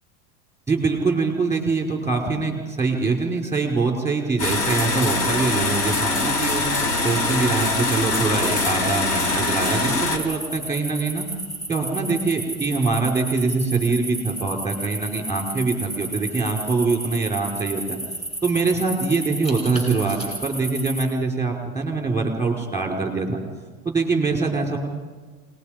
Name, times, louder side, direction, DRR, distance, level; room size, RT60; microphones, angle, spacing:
voice 1, 0.7-6.6 7.0-11.3 11.7-18.0 18.4-23.4 23.8-24.8, right 3 dB, 5° right, 2 dB, 5.0 m, -23 dB
sound 1, 4.4-10.2, left 2 dB, 90° left, 3.7 m, -23 dB
sound 2, 10.1-21.0, right 2 dB, 15° left, 7.7 m, -33 dB
27.0 x 20.0 x 5.2 m, 1.3 s
supercardioid pair, 110°, 43 cm